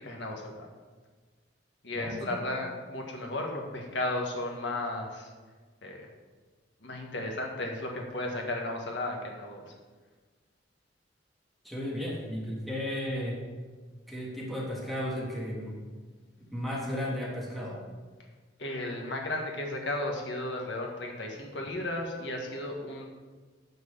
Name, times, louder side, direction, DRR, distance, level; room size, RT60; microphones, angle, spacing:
voice 1, 0.0-0.7 1.8-5.3 5.8-6.0 6.8-9.6 18.6-23.1, left 1 dB, 75° left, 1 dB, 1.6 m, -34 dB
voice 2, 1.9-2.4 11.6-13.4 14.1-15.7 16.5-17.8 21.6-21.7, equal, ahead, -4 dB, 1.7 m, -34 dB
9.4 x 4.6 x 6.9 m, 1.4 s
head